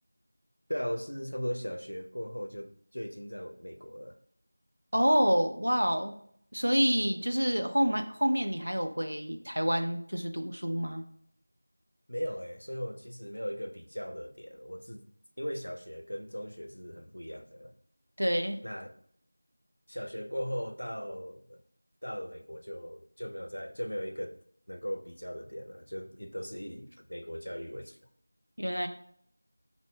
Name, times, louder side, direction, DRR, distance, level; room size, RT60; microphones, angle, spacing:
voice 1, 0.7-4.2 12.1-15.1 15.4-17.7 18.6-18.9 19.9-21.6 22.0-24.4 24.7-28.0, equal, 85° left, 0.4 m, -38 dB
voice 2, 4.9-6.1 6.5-11.1 18.2-18.6 28.6-28.9, equal, 85° right, 0.5 m, -28 dB
3.9 x 2.0 x 3.2 m
figure-of-eight pair, 175°, 0 cm